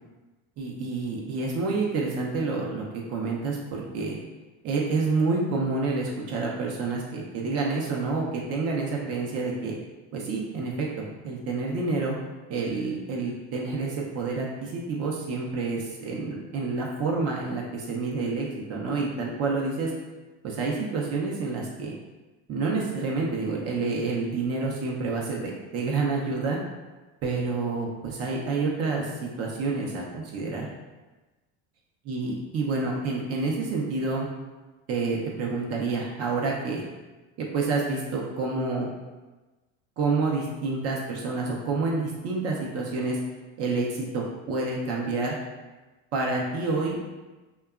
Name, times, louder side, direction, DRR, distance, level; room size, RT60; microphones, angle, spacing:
voice 1, 0.6-4.2 4.6-9.8 10.1-12.2 12.5-19.9 20.4-21.9 22.5-26.6 27.2-30.7 32.0-34.3 34.9-36.8 37.4-38.9 40.0-43.2 43.6-45.4 46.1-47.0, right 3 dB, 45° right, -2 dB, 0.5 m, -28 dB
2.7 x 2.2 x 2.3 m, 1.2 s
supercardioid pair, 115°, 36 cm